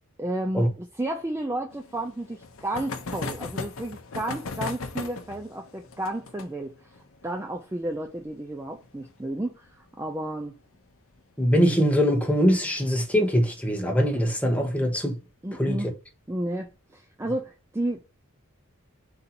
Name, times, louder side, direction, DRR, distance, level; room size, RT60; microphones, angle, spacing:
voice 1, 0.2-6.9 7.2-10.6 15.4-15.9 16.3-18.0, right 1 dB, 10° right, 0.3 m, -32 dB
sound 1, 1.7-10.9 11.2-11.3 11.5-11.6 11.9-12.0 13.4-13.7 14.3-14.8, left 4 dB, 65° left, 0.6 m, -38 dB
voice 2, 11.4-15.2 15.6-15.8, equal, 5° left, 0.8 m, -22 dB
4.0 x 2.7 x 4.1 m
head